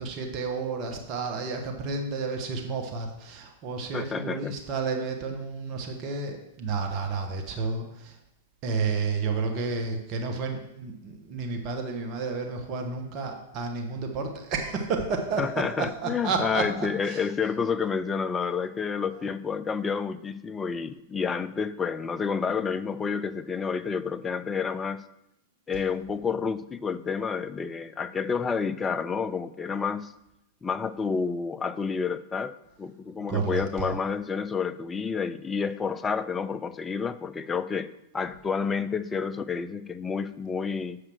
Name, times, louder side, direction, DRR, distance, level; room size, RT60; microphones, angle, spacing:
voice 1, 0.0-8.2 8.6-17.2 33.3-34.0, right 4 dB, 40° right, 3 dB, 1.2 m, -31 dB
voice 2, 3.9-4.5 15.4-25.1 25.7-30.1 30.6-41.0, left 5 dB, 15° left, 12 dB, 0.5 m, -29 dB
7.4 x 5.0 x 6.2 m, 0.86 s
figure-of-eight pair, 100°, 0 cm